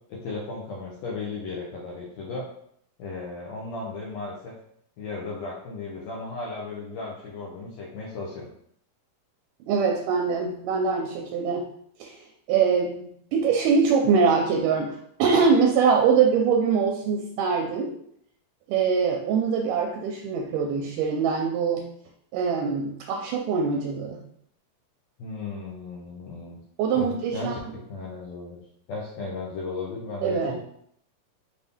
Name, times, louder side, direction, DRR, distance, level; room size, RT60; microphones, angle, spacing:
voice 1, 0.1-2.5 3.0-4.5 5.0-8.5 25.2-26.6 26.9-28.6 28.9-30.7, left 3 dB, 75° left, -3 dB, 1.6 m, -35 dB
voice 2, 9.7-11.7 12.0-17.9 18.7-21.9 22.3-24.2 26.8-27.6 30.2-30.5, right 5 dB, 80° right, 2 dB, 2.1 m, -23 dB
5.7 x 2.7 x 3.4 m, 0.69 s
omnidirectional pair, 3.8 m